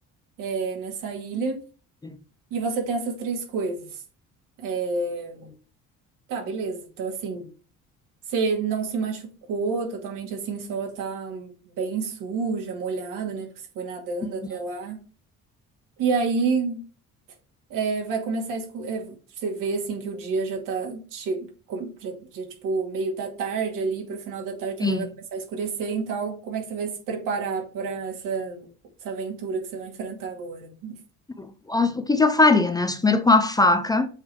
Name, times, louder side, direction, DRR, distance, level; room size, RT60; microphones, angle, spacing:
voice 1, 0.4-1.6 2.5-4.0 4.6-5.5 6.3-7.5 8.3-13.5 13.7-15.0 16.0-16.8 17.7-28.7 29.0-31.0, right 4 dB, 85° right, 2.3 m, -29 dB
voice 2, 31.4-34.1, left 3 dB, 10° left, 0.4 m, -20 dB
7.3 x 3.3 x 4.6 m
cardioid pair, 150°, 31 cm